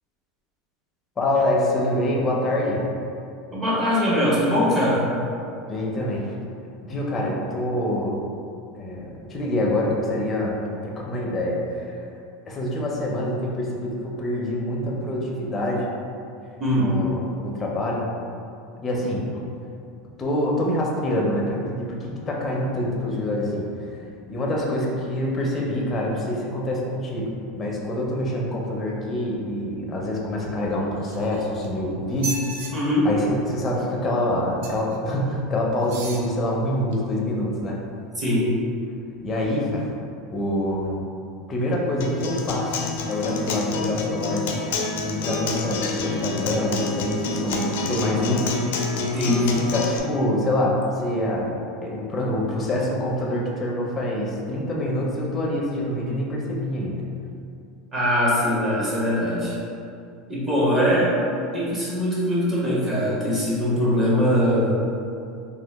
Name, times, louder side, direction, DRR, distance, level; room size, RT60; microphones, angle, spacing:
voice 1, 1.2-2.8 5.7-6.3 6.8-8.2 8.7-10.5 10.8-11.9 12.5-15.9 16.7-18.0 18.8-19.2 20.2-24.0 24.3-32.4 33.0-37.8 39.2-39.9 40.3-41.1 41.5-44.5 45.0-48.5 49.3-57.1, left 1 dB, 20° left, -3 dB, 0.5 m, -26 dB
voice 2, 3.5-5.0 16.6-16.9 32.7-33.1 38.2-38.5 49.1-49.5 57.9-59.5 60.3-61.2 61.5-64.9, equal, 20° right, -8 dB, 0.9 m, -21 dB
sound 1, 31.0-31.7 32.1-32.7 34.6-35.0 35.8-36.3 36.9-37.0, right 3 dB, 80° right, 0.4 m, -34 dB
Acoustic guitar, 42.0-50.0, left 4 dB, 80° left, 0.4 m, -27 dB
2.8 x 2.4 x 3.4 m, 2.5 s
supercardioid pair, 150°, 0 cm